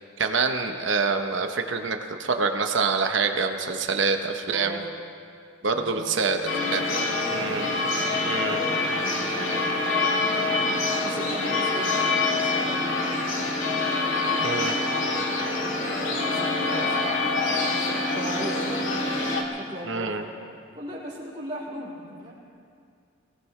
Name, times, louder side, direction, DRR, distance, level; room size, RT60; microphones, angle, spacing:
voice 1, 0.2-4.8 5.6-7.0 7.3-7.7 8.2-8.6 14.4-14.7 19.9-20.2, right 4 dB, 65° right, 6 dB, 0.9 m, -26 dB
voice 2, 4.4-4.8 5.7-7.1 8.3-10.6 11.0-13.2 13.8-17.1 17.4-17.8 18.1-19.0 19.5-20.4 20.7-22.3, equal, 20° right, -6 dB, 3.9 m, -39 dB
sound 1, 6.5-19.4, left 3 dB, 70° left, 1.9 m, -25 dB
24.0 x 17.5 x 3.3 m, 2.3 s
head